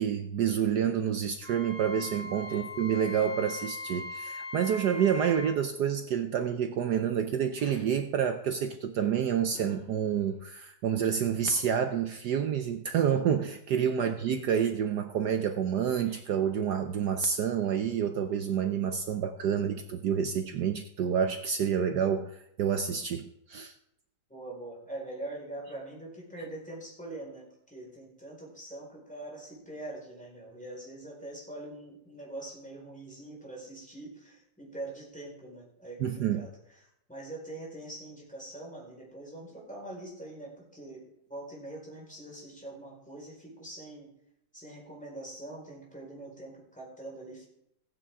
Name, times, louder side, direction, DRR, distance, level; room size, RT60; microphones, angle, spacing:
voice 1, 0.0-23.7 36.0-36.5, right 8 dB, 65° right, 8 dB, 1.1 m, -28 dB
Wind instrument woodwind instrument, 1.4-5.5, left 2 dB, 85° right, 2.7 m, -40 dB
sound 1, 7.6-8.0 9.5-10.3 11.4-11.9, left 3 dB, 70° left, 2.7 m, -51 dB
voice 2, 24.3-44.1 44.5-47.4, right 2 dB, 5° left, -3 dB, 4.5 m, -43 dB
15.5 x 9.3 x 3.6 m, 0.78 s
omnidirectional pair, 2.3 m